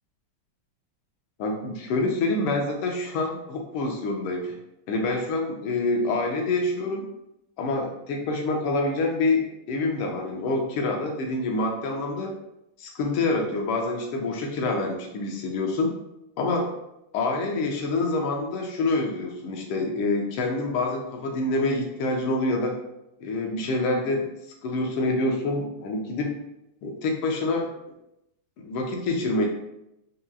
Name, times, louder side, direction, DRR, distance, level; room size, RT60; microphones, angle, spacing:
voice 1, 1.4-4.5 4.9-7.1 7.6-12.3 12.8-15.9 16.4-16.7 17.1-22.7 23.2-24.2 24.6-26.3 26.8-27.7 28.6-29.5, left 2 dB, 85° left, 2 dB, 1.6 m, -26 dB
4.8 x 2.8 x 2.3 m, 0.84 s
omnidirectional pair, 2.4 m